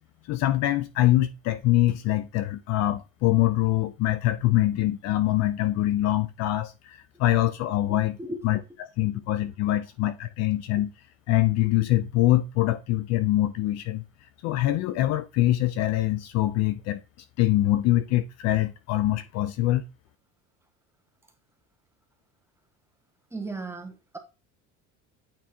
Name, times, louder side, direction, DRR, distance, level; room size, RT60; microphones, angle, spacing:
voice 1, 0.3-8.2 8.4-10.9 11.3-14.0 14.4-17.0 17.4-19.8, left 15 dB, 50° left, 0.5 m, -24 dB
voice 2, 7.9-8.5 23.3-24.2, right 2 dB, 5° right, 0.9 m, -36 dB
8.7 x 3.5 x 4.4 m
cardioid pair, 160°, 35 cm